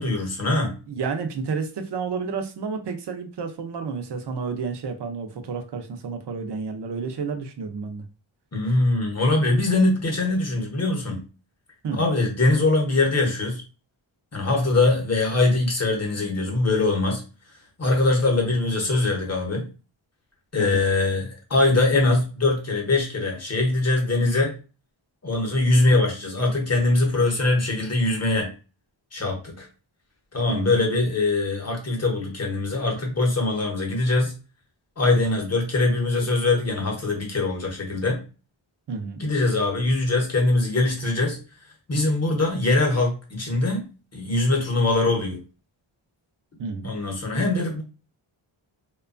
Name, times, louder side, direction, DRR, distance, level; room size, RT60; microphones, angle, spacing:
voice 1, 0.0-0.8 8.5-11.2 11.9-13.6 14.3-17.2 17.8-19.7 20.5-24.5 25.2-28.5 29.1-29.7 30.3-34.3 35.0-38.2 39.2-41.4 41.9-43.9 44.1-45.4 46.8-47.8, left 2 dB, 30° left, 1 dB, 0.8 m, -22 dB
voice 2, 0.9-8.0 11.8-12.0 20.6-20.8 30.5-30.8 38.9-39.2 46.6-47.0, right 5 dB, 55° right, 5 dB, 0.5 m, -30 dB
2.8 x 2.2 x 2.4 m, 0.33 s
wide cardioid pair, 120°, 48 cm